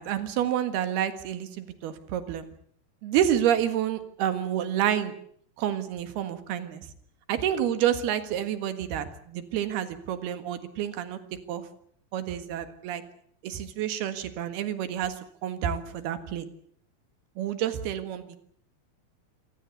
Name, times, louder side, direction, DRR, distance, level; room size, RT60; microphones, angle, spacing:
voice 1, 0.0-2.5 3.0-5.1 5.6-6.9 7.3-11.2 11.5-11.7 12.1-13.0 13.4-15.2 15.4-16.5 17.4-18.4, right 10 dB, 85° right, 10 dB, 3.7 m, -29 dB
27.0 x 18.0 x 8.1 m, 0.63 s
omnidirectional pair, 4.4 m